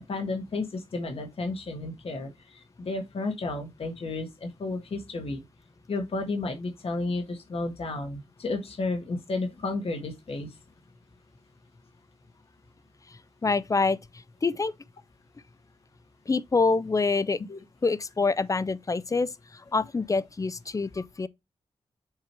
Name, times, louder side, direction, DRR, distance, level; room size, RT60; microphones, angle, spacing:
voice 1, 0.1-5.4 5.9-10.5 17.5-17.6, left 3 dB, 60° left, 1.5 m, -32 dB
voice 2, 13.1-14.7 16.3-17.4 17.8-21.3, left 4 dB, 30° left, 0.5 m, -26 dB
7.5 x 3.0 x 4.6 m
cardioid pair, 75°, 11 cm